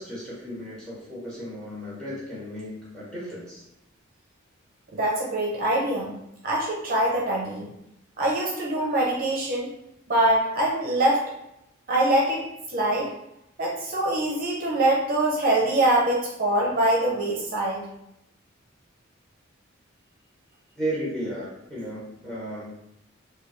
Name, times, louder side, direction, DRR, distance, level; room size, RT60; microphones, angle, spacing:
voice 1, 0.0-3.6 20.8-22.8, equal, 5° left, -7 dB, 1.1 m, -34 dB
voice 2, 4.9-6.1 6.4-7.7 8.2-9.7 10.1-11.2 11.9-13.1 13.6-17.8, right 1 dB, 45° right, -2 dB, 0.6 m, -24 dB
3.3 x 2.2 x 3.1 m, 0.82 s
head